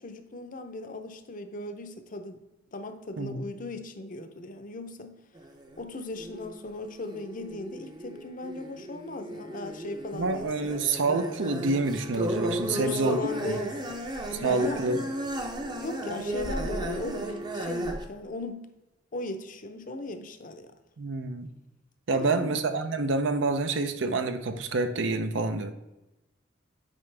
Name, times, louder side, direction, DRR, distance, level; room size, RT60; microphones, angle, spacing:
voice 1, 0.0-2.4 2.7-5.2 5.8-10.8 12.7-14.0 14.4-14.8 15.8-18.7 19.1-20.7 22.1-22.5, left 2 dB, 45° left, 7 dB, 0.7 m, -37 dB
sound 1, 5.3-5.8 6.1-18.1, right 1 dB, 25° right, 0.7 m, -35 dB
voice 2, 10.1-13.2 13.5-13.6 14.3-15.1 21.0-21.5 22.1-25.7, right 3 dB, 75° right, 8 dB, 0.6 m, -27 dB
8.9 x 4.9 x 3.3 m, 0.99 s
head